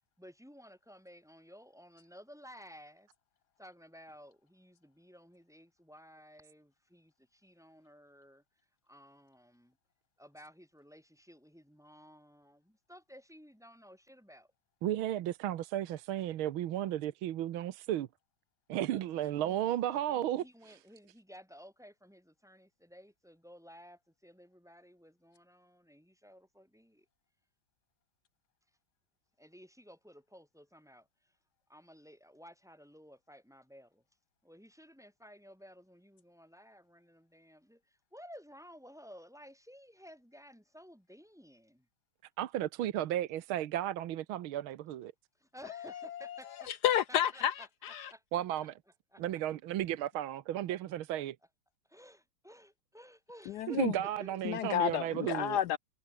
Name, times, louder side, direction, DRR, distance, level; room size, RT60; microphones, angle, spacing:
voice 1, 0.2-3.1 3.6-8.4 8.8-9.8 10.2-14.5 19.1-27.1 29.4-31.3 31.7-34.0 34.4-41.9 45.4-46.7 47.1-47.7 48.1-48.2 49.1-49.4 50.7-50.8 51.9-55.6, equal, ahead, 4.6 m, -55 dB
voice 2, 14.8-18.1 18.7-20.4 42.4-45.1 48.3-48.7 49.2-51.4 53.7-55.6, right 12 dB, 80° right, 1.7 m, -34 dB
voice 3, 45.7-46.4 46.7-48.1 53.5-53.9 54.4-55.8, left 10 dB, 75° left, 0.9 m, -31 dB
omnidirectional pair, 2.3 m